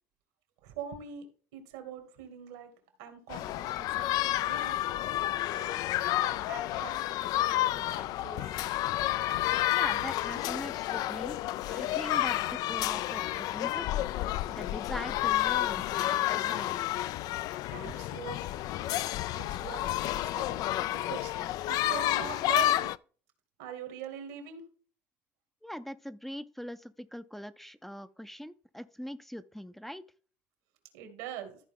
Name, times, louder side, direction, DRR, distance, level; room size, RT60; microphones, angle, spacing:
voice 1, 0.6-1.3 1.5-2.7 3.0-5.0 5.5-5.8 6.2-8.6 17.7-18.4 19.3-22.9 23.6-24.6 30.9-31.6, right 8 dB, 90° right, 2.4 m, -43 dB
sound 1, 3.3-23.0, left 14 dB, 60° left, 0.3 m, -30 dB
voice 2, 9.7-13.9 14.5-16.8 25.6-30.0, equal, 5° left, 0.5 m, -42 dB
14.0 x 4.7 x 3.7 m
supercardioid pair, 100°, 7 cm